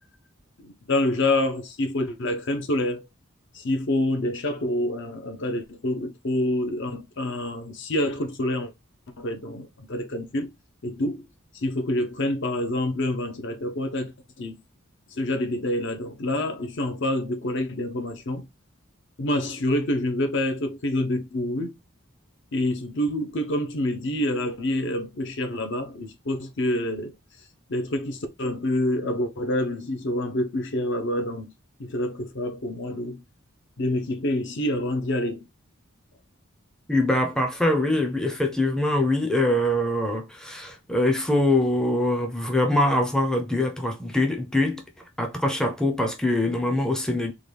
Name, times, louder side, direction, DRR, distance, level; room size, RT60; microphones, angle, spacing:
voice 1, 0.6-3.1 3.5-8.7 9.2-10.5 10.8-11.2 11.5-14.6 15.1-18.5 19.2-21.7 22.5-27.1 27.7-31.5 31.8-33.2 33.8-35.4, left 1 dB, 55° left, 0.6 m, -27 dB
voice 2, 36.9-44.8 45.2-47.3, left 1 dB, 5° left, 0.5 m, -23 dB
3.7 x 2.2 x 3.3 m
head